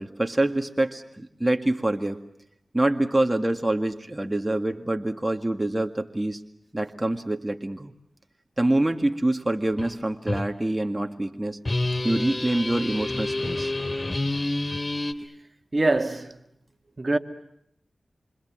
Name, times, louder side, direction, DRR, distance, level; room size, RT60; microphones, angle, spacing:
voice 1, 0.0-2.2 2.7-6.4 6.7-7.9 8.6-11.6 12.0-13.7, right 1 dB, 20° right, 2.0 m, -25 dB
sound 1, 9.8-10.0 10.3-10.5 11.6-15.1, left 2 dB, 40° left, 2.5 m, -28 dB
voice 2, 15.7-16.4 17.0-17.2, right 2 dB, 40° right, 2.2 m, -23 dB
27.5 x 25.5 x 7.5 m
cardioid pair, 50°, 0 cm